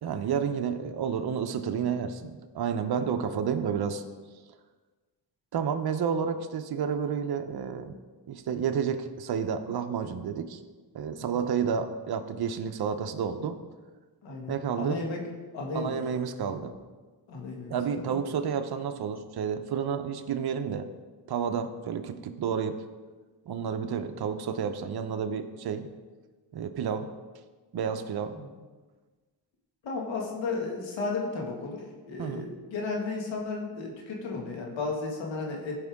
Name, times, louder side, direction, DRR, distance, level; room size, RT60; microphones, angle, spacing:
voice 1, 0.0-4.0 5.5-8.0 8.3-10.6 10.9-13.6 14.5-15.0 15.7-16.7 17.7-20.9 21.3-22.8 23.5-25.9 26.5-27.1 27.7-28.4 32.2-32.5, right 7 dB, 55° right, 7 dB, 0.9 m, -30 dB
voice 2, 14.2-15.2 15.5-16.0 17.3-18.1 28.3-28.5 29.8-35.8, left 3 dB, 90° left, -1 dB, 2.1 m, -34 dB
15.0 x 5.4 x 3.6 m, 1.4 s
cardioid pair, 75°, 44 cm